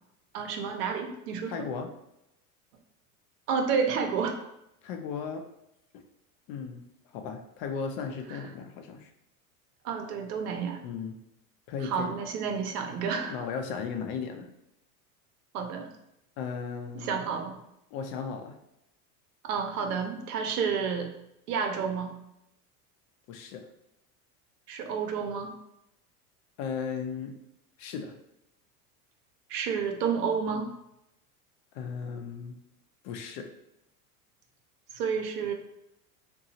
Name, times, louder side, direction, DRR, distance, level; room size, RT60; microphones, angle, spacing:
voice 1, 0.3-1.6 3.5-4.4 8.3-8.4 9.8-10.8 11.8-13.3 15.5-15.9 17.0-17.6 19.4-21.1 21.5-22.1 24.7-25.5 29.5-30.7 34.9-35.5, right 6 dB, 80° right, 4 dB, 0.7 m, -30 dB
voice 2, 1.5-1.9 4.8-5.4 5.9-6.0 6.5-6.8 7.1-9.1 10.8-11.2 11.7-12.1 13.3-14.5 16.4-17.2 17.9-18.6 23.3-23.7 26.6-27.3 27.8-28.1 31.7-32.6 33.0-33.5, left 6 dB, 60° left, 5 dB, 0.6 m, -36 dB
2.8 x 2.3 x 2.7 m, 0.83 s
hypercardioid pair, 95°, 46 cm